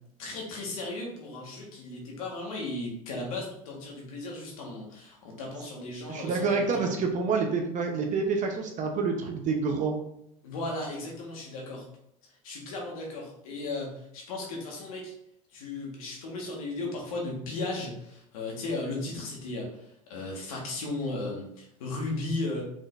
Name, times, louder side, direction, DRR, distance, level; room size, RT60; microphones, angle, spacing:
voice 1, 0.2-7.0 10.4-11.9 12.4-15.1 15.5-22.6, left 2 dB, 85° left, -1 dB, 1.5 m, -36 dB
voice 2, 6.1-10.0, right 4 dB, 45° right, 3 dB, 0.8 m, -28 dB
5.0 x 3.9 x 2.6 m, 0.75 s
supercardioid pair, 95°, 18 cm